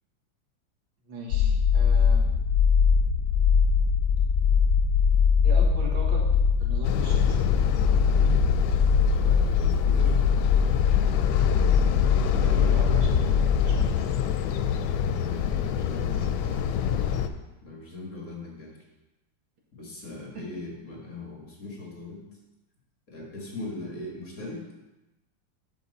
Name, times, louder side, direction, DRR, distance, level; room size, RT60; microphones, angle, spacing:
voice 1, 1.1-2.3 5.4-6.3 6.6-7.5 12.4-14.3 15.9-16.9 20.4-20.5, right 1 dB, 85° right, -2 dB, 2.4 m, -40 dB
sound 1, 1.3-13.9, left 6 dB, 70° left, 1.3 m, -22 dB
sound 2, 6.8-17.3, left 8 dB, 90° left, 1.4 m, -27 dB
voice 2, 9.1-10.2 15.1-16.4 17.6-18.8 19.7-22.2 23.1-24.6, left 2 dB, 45° left, -2 dB, 2.2 m, -40 dB
8.8 x 6.3 x 4.1 m, 1.0 s
omnidirectional pair, 2.1 m